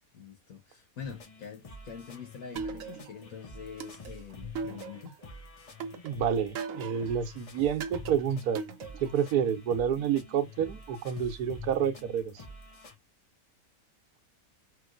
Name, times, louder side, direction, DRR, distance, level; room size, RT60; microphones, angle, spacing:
voice 1, 0.1-5.1, left 6 dB, 70° left, 1.4 m, -45 dB
sound 1, 1.0-13.0, left 3 dB, 40° left, 0.5 m, -48 dB
sound 2, 2.6-3.3 3.8-5.3 5.8-7.2 7.8-9.2, right 5 dB, 70° right, 1.0 m, -39 dB
voice 2, 6.0-8.7 9.0-12.4, right 8 dB, 85° right, 1.2 m, -29 dB
3.0 x 2.9 x 2.4 m
omnidirectional pair, 1.6 m